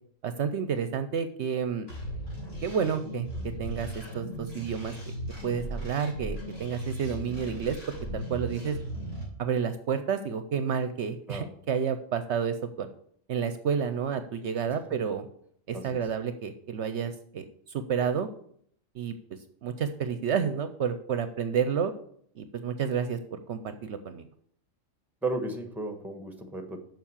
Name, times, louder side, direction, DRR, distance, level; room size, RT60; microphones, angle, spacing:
voice 1, 0.2-1.9 2.6-3.3 3.6-5.1 5.4-7.8 8.1-8.8 9.4-12.9 13.3-15.3 15.7-18.3 18.9-19.1 19.6-21.9 22.4-24.2, right 7 dB, 65° right, 10 dB, 0.9 m, -30 dB
sound 1, 1.9-9.2, right 1 dB, 50° left, 3.8 m, -37 dB
voice 2, 25.2-26.8, right 2 dB, ahead, 6 dB, 1.1 m, -34 dB
7.2 x 5.7 x 7.2 m, 0.64 s
omnidirectional pair, 1.3 m